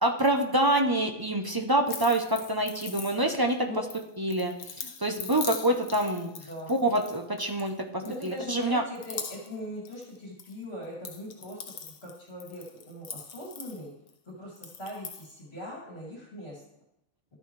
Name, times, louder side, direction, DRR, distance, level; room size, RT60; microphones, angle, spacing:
voice 1, 0.0-3.7 4.2-6.3 6.7-8.8, right 1 dB, 30° right, 3 dB, 0.4 m, -26 dB
sound 1, 1.9-3.5 3.9-7.7 8.0-8.6 8.9-10.5 10.8-14.1 14.6-15.3, left 6 dB, 65° left, 1.3 m, -42 dB
voice 2, 6.4-6.8 8.0-13.9 14.3-16.6, left 1 dB, 45° left, -5 dB, 3.1 m, -41 dB
13.0 x 9.3 x 3.2 m, 0.84 s
omnidirectional pair, 1.5 m